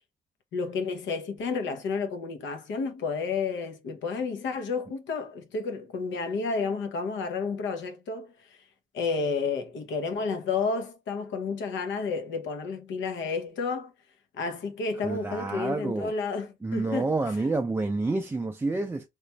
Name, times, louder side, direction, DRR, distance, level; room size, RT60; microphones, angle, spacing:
voice 1, 0.5-8.3 8.9-13.9 14.4-17.1, left 4 dB, 70° left, 0.8 m, -31 dB
voice 2, 15.0-16.1 16.6-19.1, right 3 dB, 10° right, 0.3 m, -28 dB
3.0 x 2.5 x 3.2 m
cardioid pair, 90°, 20 cm